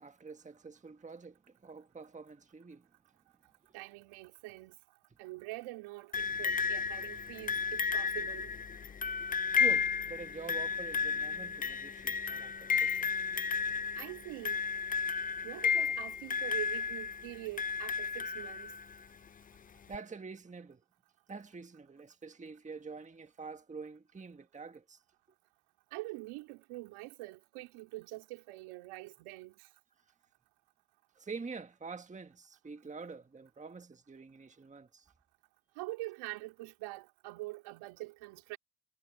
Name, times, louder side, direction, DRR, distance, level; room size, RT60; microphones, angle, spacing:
voice 1, 0.0-2.9 9.6-13.1 19.8-20.8 21.3-25.0 31.2-35.0, right 4 dB, 15° right, 1.6 m, -46 dB
voice 2, 3.7-4.8 5.2-8.5 13.9-14.6 15.4-18.7 25.9-29.7 35.8-38.6, right 20 dB, 75° right, 3.0 m, -44 dB
sound 1, 6.1-19.0 19.9-20.0, left 6 dB, 20° left, 0.4 m, -33 dB
supercardioid pair, 100°, 49 cm